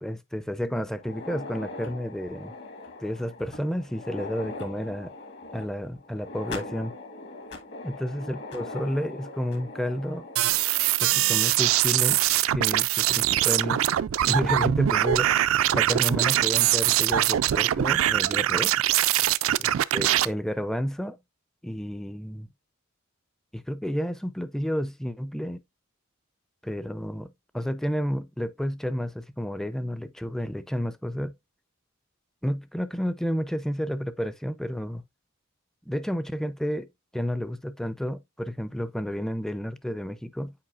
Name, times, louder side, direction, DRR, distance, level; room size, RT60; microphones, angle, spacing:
voice 1, 0.0-2.5 3.0-5.1 5.5-6.9 7.8-10.3 11.0-12.2 12.5-13.8 14.3-15.3 15.7-18.7 19.9-21.2 21.6-22.5 23.5-25.6 26.6-31.3 32.4-35.0 35.9-36.9 37.1-40.5, equal, ahead, 0.4 m, -31 dB
sound 1, 0.9-11.7 12.1-12.2 13.0-13.1 13.6-13.7 15.0-15.3, left 2 dB, 55° left, 1.2 m, -41 dB
sound 2, 10.4-20.3, right 13 dB, 75° right, 0.3 m, -23 dB
8.6 x 4.6 x 2.4 m
head